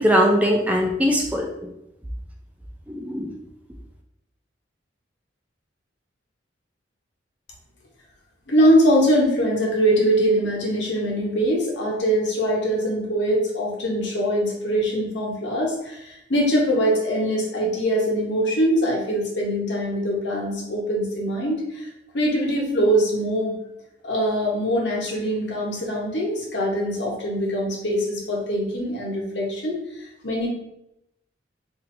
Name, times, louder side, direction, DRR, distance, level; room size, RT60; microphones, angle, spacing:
voice 1, 0.0-1.7 2.9-3.3, equal, 10° right, 0 dB, 0.3 m, -21 dB
voice 2, 8.5-21.9 22.1-23.5 24.0-30.5, equal, 65° left, -2 dB, 1.0 m, -22 dB
4.2 x 2.7 x 2.6 m, 0.83 s
head